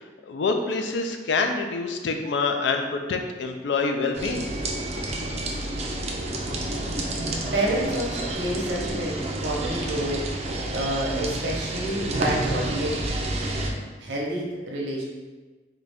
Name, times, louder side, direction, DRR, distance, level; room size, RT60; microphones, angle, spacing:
voice 1, 0.3-4.5, left 4 dB, 75° left, 4 dB, 0.4 m, -26 dB
sound 1, 4.1-13.7, right 1 dB, 35° right, 0.4 m, -29 dB
voice 2, 7.5-10.2 10.7-13.1 14.0-15.0, right 1 dB, 85° right, -3 dB, 0.9 m, -28 dB
3.9 x 2.2 x 3.4 m, 1.3 s
head